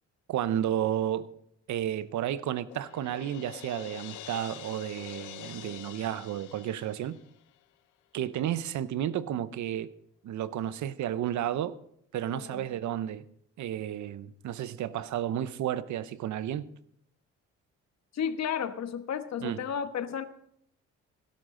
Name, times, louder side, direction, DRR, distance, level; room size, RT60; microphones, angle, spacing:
voice 1, 0.3-1.3 1.7-7.2 8.1-9.9 10.2-11.8 12.1-13.2 13.6-16.7 19.4-19.6, right 11 dB, 70° right, 0.8 m, -32 dB
Crash cymbal, 2.7-7.6, left 14 dB, 90° left, 0.8 m, -46 dB
voice 2, 12.3-12.6 18.1-20.3, left 8 dB, 60° left, 1.2 m, -33 dB
17.5 x 11.5 x 3.8 m
cardioid pair, 90°, 30 cm